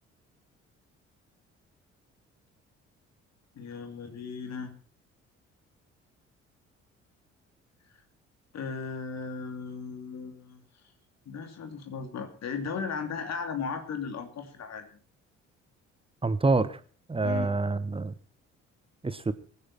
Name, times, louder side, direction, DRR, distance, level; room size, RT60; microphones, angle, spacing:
voice 1, 3.6-4.7 8.5-10.6 11.3-14.9 17.2-17.5, left 5 dB, 45° left, 7 dB, 2.7 m, -36 dB
voice 2, 16.2-16.8 17.1-18.1 19.0-19.3, right 3 dB, 15° right, 13 dB, 1.2 m, -26 dB
23.0 x 10.0 x 4.2 m, 0.40 s
figure-of-eight pair, 45°, 36 cm